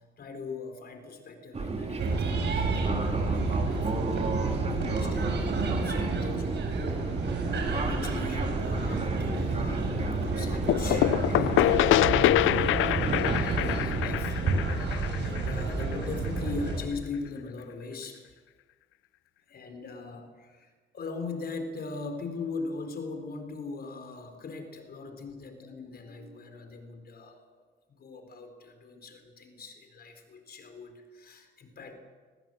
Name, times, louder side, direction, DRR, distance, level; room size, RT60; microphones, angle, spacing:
voice 1, 0.0-14.4 14.7-18.3 19.5-27.5 28.0-32.0, left 4 dB, 50° left, 6 dB, 4.3 m, -41 dB
Fixed-wing aircraft airplane, 1.5-14.2, right 3 dB, 30° right, 3.5 m, -33 dB
sound 1, 2.0-16.8, right 3 dB, 60° right, 6.9 m, -30 dB
sound 2, 10.7-16.3, left 15 dB, 85° left, 0.6 m, -25 dB
22.0 x 20.5 x 7.9 m, 1.5 s
cardioid pair, 90°, 20 cm